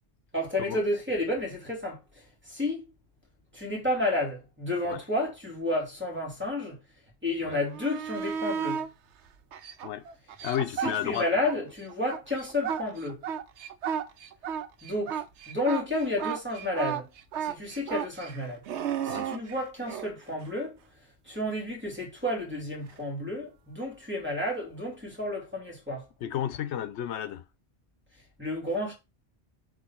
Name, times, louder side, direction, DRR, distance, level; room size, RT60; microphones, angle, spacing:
voice 1, 0.3-2.0 2.4-2.9 3.5-6.8 7.2-8.9 10.8-13.2 14.8-17.1 17.4-18.6 19.0-20.8 21.3-26.1 28.4-28.9, left 1 dB, 10° right, 2.6 m, -31 dB
sound 1, 7.7-8.9 9.5-11.6 11.9-20.1 22.9-23.0, right 8 dB, 90° right, 1.0 m, -33 dB
voice 2, 10.4-11.3 19.1-19.3 26.2-27.4, left 10 dB, 85° left, 0.9 m, -32 dB
5.0 x 3.7 x 5.8 m
omnidirectional pair, 1.1 m